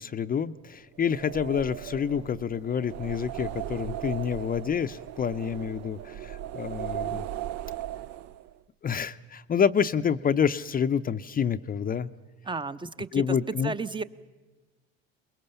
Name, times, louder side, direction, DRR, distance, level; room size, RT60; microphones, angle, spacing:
voice 1, 0.0-7.3 8.8-12.1 13.1-13.7, left 7 dB, 30° left, 11 dB, 0.7 m, -28 dB
sound 1, 1.0-8.6, right 12 dB, 60° right, 0.6 m, -37 dB
voice 2, 12.4-13.4 13.6-14.0, right 3 dB, 15° right, 14 dB, 0.8 m, -33 dB
23.5 x 21.5 x 6.9 m, 1.3 s
hypercardioid pair, 80°, 31 cm